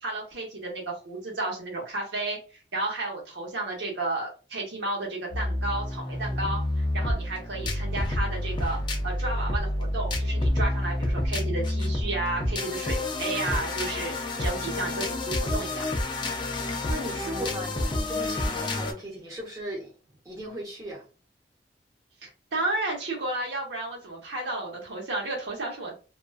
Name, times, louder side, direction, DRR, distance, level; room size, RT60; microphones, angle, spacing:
voice 1, 0.0-8.8 9.0-15.8 22.2-26.0, right 2 dB, 80° right, 0.9 m, -32 dB
sound 1, 5.3-18.9, left 1 dB, 25° left, 0.4 m, -29 dB
voice 2, 16.4-19.9 20.2-21.0, right 1 dB, 20° right, 0.9 m, -38 dB
2.4 x 2.2 x 2.3 m
head